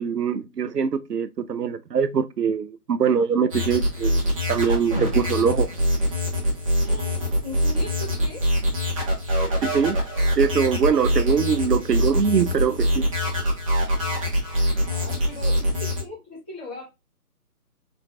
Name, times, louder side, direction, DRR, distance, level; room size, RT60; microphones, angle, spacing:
voice 1, 0.0-5.7 9.6-10.0 10.4-13.1, right 7 dB, 85° right, 0.6 m, -23 dB
sound 1, 3.5-16.0, equal, 20° right, 1.2 m, -24 dB
voice 2, 6.8-8.4 14.8-16.9, left 1 dB, 10° left, 1.1 m, -39 dB
4.2 x 3.8 x 2.3 m
figure-of-eight pair, 150°, 47 cm